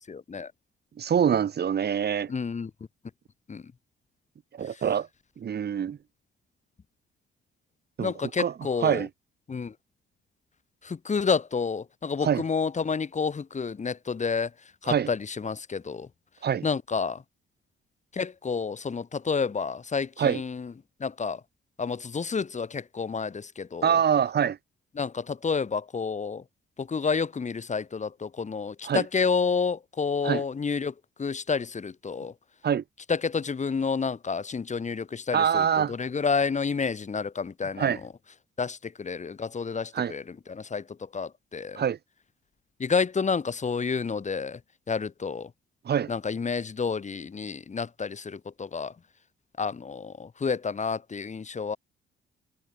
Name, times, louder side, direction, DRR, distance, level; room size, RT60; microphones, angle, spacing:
voice 1, 0.1-0.5 2.3-2.7 3.5-3.6 8.0-9.1 9.5-9.7 10.8-14.5 14.8-16.1 16.6-17.2 18.1-20.7 21.0-21.4 21.8-23.9 25.0-26.4 26.8-30.9 31.2-32.3 33.1-38.1 38.6-41.8 42.8-44.6 44.9-45.5 46.1-48.9 49.6-51.8, left 5 dB, 35° left, 6.4 m, -29 dB
voice 2, 1.0-2.3 4.5-5.1 5.4-6.0 8.0-8.1 8.4-8.5 8.8-9.1 12.2-12.4 14.9-15.1 16.4-16.7 20.2-20.4 23.8-24.6 28.8-29.0 30.2-30.4 32.6-32.8 35.3-35.9 37.8-38.0 39.9-40.1 41.8-42.0 45.8-46.1, right 8 dB, 55° right, 4.9 m, -25 dB
cardioid pair, 90°, 20 cm